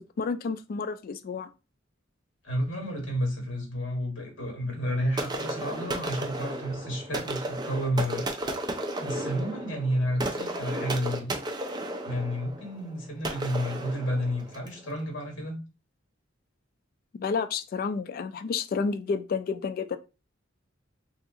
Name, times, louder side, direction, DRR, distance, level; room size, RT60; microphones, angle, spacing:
voice 1, 0.0-1.5 17.2-20.0, left 5 dB, 50° left, 0.3 m, -30 dB
voice 2, 2.4-8.3 9.0-11.3 12.0-15.6, equal, 70° left, 1.4 m, -31 dB
sound 1, 5.2-14.8, right 1 dB, 20° right, 0.4 m, -34 dB
2.7 x 2.4 x 3.7 m
head